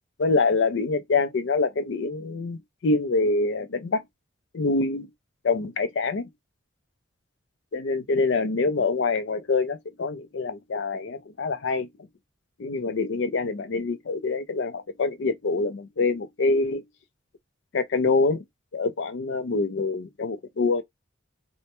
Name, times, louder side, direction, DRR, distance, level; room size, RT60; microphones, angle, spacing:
voice 1, 0.2-4.0 4.5-5.1 5.4-6.3 7.7-11.9 12.6-16.8 17.7-18.4 18.7-20.8, left 3 dB, 60° left, 0.4 m, -25 dB
2.1 x 2.1 x 2.8 m
head